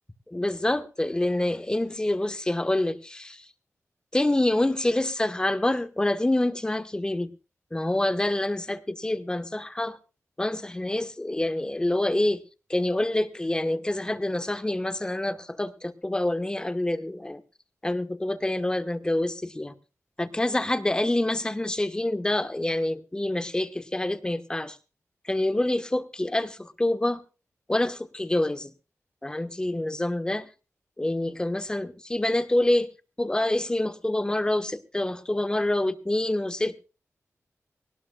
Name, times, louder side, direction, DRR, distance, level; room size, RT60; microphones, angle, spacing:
voice 1, 0.3-3.4 4.1-7.3 7.7-10.0 10.4-12.4 12.7-17.4 17.8-19.7 20.2-24.8 25.3-27.2 27.7-28.7 29.2-30.5 31.0-32.9 33.2-36.8, left 1 dB, 15° left, 9 dB, 1.2 m, -26 dB
20.0 x 18.5 x 2.3 m, 0.34 s
wide cardioid pair, 115°, 5 cm